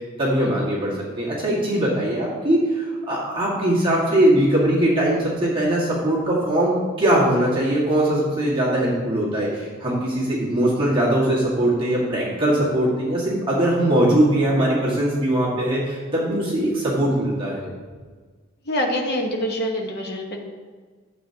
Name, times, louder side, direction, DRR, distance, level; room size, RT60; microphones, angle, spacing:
voice 1, 0.2-17.7, right 1 dB, 25° right, -6 dB, 1.9 m, -21 dB
voice 2, 18.6-20.4, equal, 55° left, 1 dB, 1.3 m, -25 dB
11.5 x 7.7 x 2.9 m, 1.5 s
head